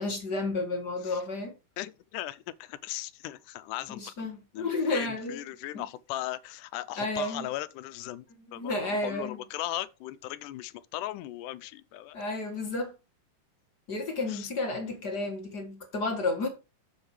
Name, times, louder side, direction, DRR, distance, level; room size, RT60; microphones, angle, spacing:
voice 1, 0.0-1.6 3.9-5.4 5.7-5.8 7.0-7.5 8.5-9.4 12.1-12.9 13.9-16.5, left 2 dB, 40° left, 1.7 m, -31 dB
voice 2, 1.8-4.1 4.5-8.2 8.5-12.2 14.3-14.5, left 14 dB, 85° left, 2.1 m, -38 dB
7.4 x 6.5 x 4.7 m
omnidirectional pair, 3.6 m